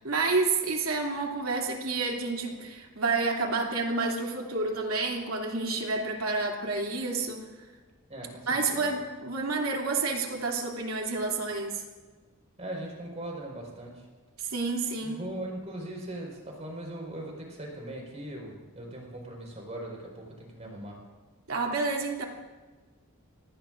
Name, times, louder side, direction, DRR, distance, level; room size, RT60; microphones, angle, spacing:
voice 1, 0.0-7.4 8.5-11.8 14.4-15.2 21.5-22.2, right 3 dB, 70° right, 0 dB, 2.8 m, -29 dB
voice 2, 8.1-8.9 12.6-13.9 15.0-21.0, right 1 dB, 30° right, -2 dB, 4.9 m, -40 dB
26.5 x 19.0 x 2.6 m, 1.3 s
head